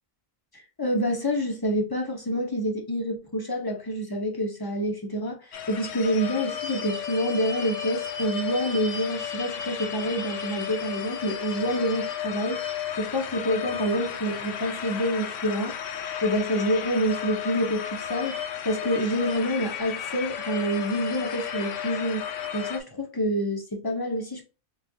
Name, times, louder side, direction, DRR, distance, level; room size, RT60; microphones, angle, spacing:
voice 1, 0.5-12.7 13.0-15.8 16.2-22.3 22.5-24.4, equal, 25° left, 0.5 m, -27 dB
sound 1, 5.5-22.8, left 8 dB, 65° left, 0.9 m, -33 dB
4.2 x 2.3 x 2.6 m
omnidirectional pair, 1.5 m